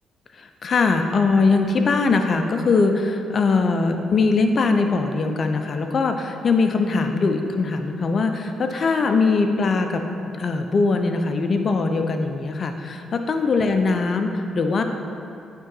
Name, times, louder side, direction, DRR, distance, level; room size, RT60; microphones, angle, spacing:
voice 1, 0.3-14.8, left 4 dB, 50° left, 6 dB, 0.6 m, -21 dB
8.8 x 3.8 x 4.5 m, 2.6 s
supercardioid pair, 60°, 0 cm